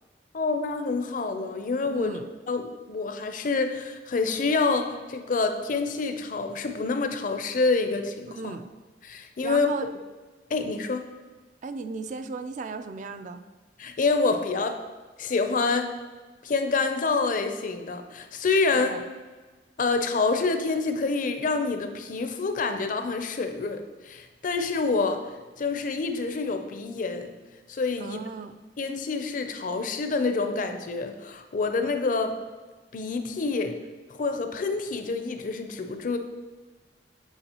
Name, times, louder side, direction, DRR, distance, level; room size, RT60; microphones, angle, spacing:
voice 1, 0.3-2.1 2.5-8.4 9.0-9.7 10.5-11.0 13.8-14.8 15.2-15.9 16.4-18.9 19.8-25.2 25.6-27.3 27.7-28.2 28.8-32.4 32.9-33.8 34.1-36.2, left 4 dB, 50° left, 7 dB, 0.5 m, -27 dB
voice 2, 1.8-2.2 8.3-8.7 9.4-9.9 11.6-13.4 18.7-19.0 28.0-28.5, right 4 dB, 45° right, 9 dB, 0.3 m, -35 dB
8.0 x 4.6 x 2.9 m, 1.3 s
head